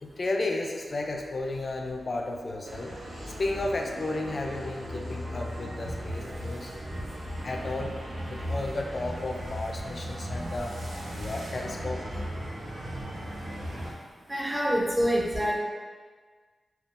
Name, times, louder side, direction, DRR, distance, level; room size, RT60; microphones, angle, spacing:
voice 1, 0.0-2.9 3.3-6.7 7.4-7.9 8.3-10.8 11.2-12.1, left 2 dB, 45° left, 2 dB, 0.3 m, -33 dB
sound 1, 2.6-13.9, equal, 85° right, 0.6 m, -37 dB
voice 2, 14.3-15.6, equal, 10° right, -3 dB, 0.5 m, -26 dB
3.5 x 2.3 x 2.5 m, 1.5 s
wide cardioid pair, 100°, 0 cm